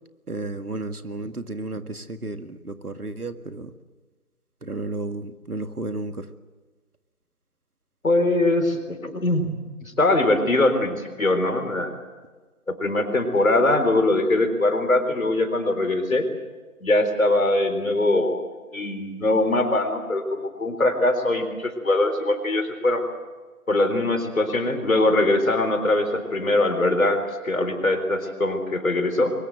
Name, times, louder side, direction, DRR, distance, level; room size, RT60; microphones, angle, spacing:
voice 1, 0.3-3.7 4.6-6.3, right 2 dB, 85° right, 9 dB, 2.0 m, -32 dB
voice 2, 8.0-9.5 9.8-11.9 12.7-16.3 16.8-18.4 18.7-23.0 23.7-29.3, left 2 dB, 65° left, 7 dB, 4.0 m, -22 dB
23.0 x 21.0 x 7.9 m, 1.3 s
figure-of-eight pair, 160°, 44 cm